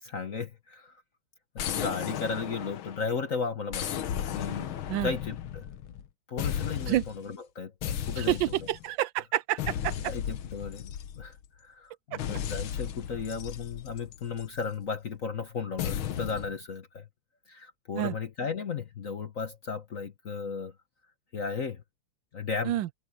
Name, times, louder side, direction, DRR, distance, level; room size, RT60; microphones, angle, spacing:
voice 1, 0.0-1.0 1.5-4.0 4.3-5.6 6.3-8.7 10.1-17.1 17.5-20.7 21.3-21.8 22.3-22.8, left 5 dB, 45° left, 1.3 m, -35 dB
sound 1, 1.6-3.2 3.7-6.1 6.4-7.2 7.8-8.8 9.6-11.5 12.2-14.6 15.8-16.5, left 9 dB, 70° left, 1.8 m, -35 dB
voice 2, 8.2-9.9 17.9-18.1 22.6-22.9, right 14 dB, 75° right, 1.2 m, -28 dB
omnidirectional pair, 2.4 m